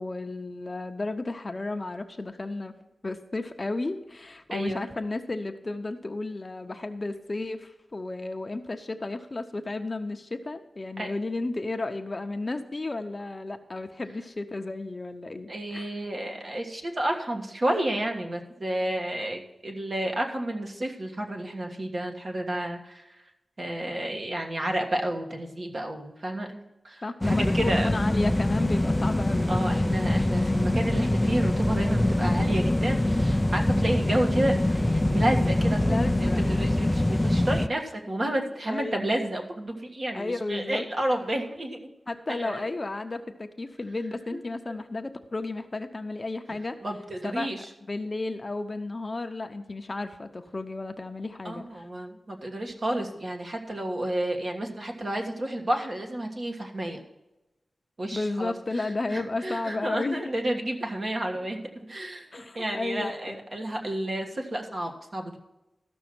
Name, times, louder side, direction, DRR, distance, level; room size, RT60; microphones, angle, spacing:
voice 1, 0.0-2.7 3.0-15.9 27.0-29.5 35.9-36.4 38.7-39.1 40.1-40.9 42.1-46.8 47.2-47.5 47.9-51.6 58.1-60.2 62.3-63.4, left 2 dB, 35° left, 7 dB, 0.7 m, -33 dB
voice 2, 4.5-4.9 11.0-11.1 15.5-23.1 23.6-27.9 29.5-41.8 42.3-42.6 44.3-44.4 44.7-44.8 46.8-47.7 51.4-57.0 58.0-62.3 62.5-65.4, right 1 dB, 45° right, 2 dB, 1.5 m, -31 dB
sound 1, 27.2-37.7, left 1 dB, 15° left, 0.4 m, -24 dB
13.5 x 6.2 x 6.1 m, 1.0 s
wide cardioid pair, 110°, 0 cm